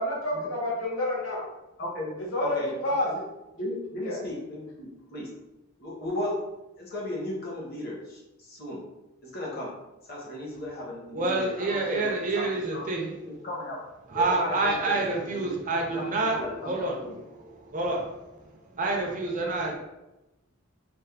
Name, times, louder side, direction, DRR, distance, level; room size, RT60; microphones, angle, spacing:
voice 1, 0.0-1.4 2.2-2.6 2.8-3.1 4.0-4.2, left 1 dB, 75° left, -4 dB, 0.8 m, -28 dB
voice 2, 1.8-2.1 2.4-3.2 3.5-5.3 5.8-6.4 6.8-8.8 9.2-9.7 10.1-12.9 13.3-13.8 14.1-15.6 15.9-17.2, left 1 dB, 50° left, -3 dB, 0.7 m, -35 dB
voice 3, 11.1-13.1 14.1-16.4 16.6-16.9 17.4-18.0 18.8-19.7, right 3 dB, 40° right, 0 dB, 0.5 m, -27 dB
3.3 x 2.0 x 2.2 m, 0.97 s
head